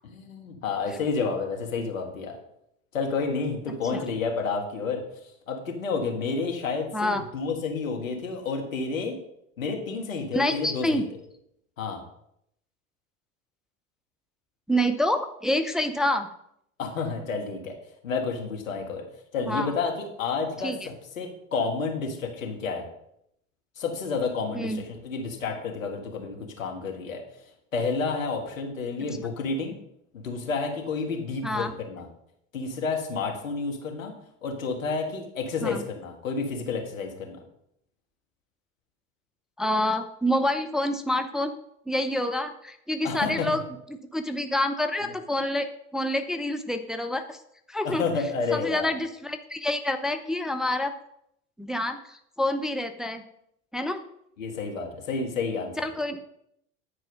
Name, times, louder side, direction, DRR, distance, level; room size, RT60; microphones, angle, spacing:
voice 1, 0.0-2.4 2.9-5.0 5.5-9.2 9.6-11.0 11.8-12.0 16.8-17.7 18.0-19.0 19.3-22.9 23.8-27.2 27.7-29.7 30.1-32.1 32.5-34.1 34.4-37.4 43.0-43.5 45.0-45.1 47.8-48.9 54.4-55.8, left 4 dB, 80° left, 2 dB, 1.7 m, -30 dB
voice 2, 10.3-11.1 14.7-16.3 19.4-19.7 20.6-20.8 24.5-24.8 31.4-31.7 35.6-35.8 39.6-41.5 41.9-43.6 44.1-45.7 45.9-47.4 47.7-48.1 48.5-50.9 51.6-53.2 53.7-54.0 55.8-56.2, left 1 dB, ahead, 7 dB, 0.6 m, -27 dB
9.8 x 4.8 x 5.3 m, 0.75 s
hypercardioid pair, 70°, 39 cm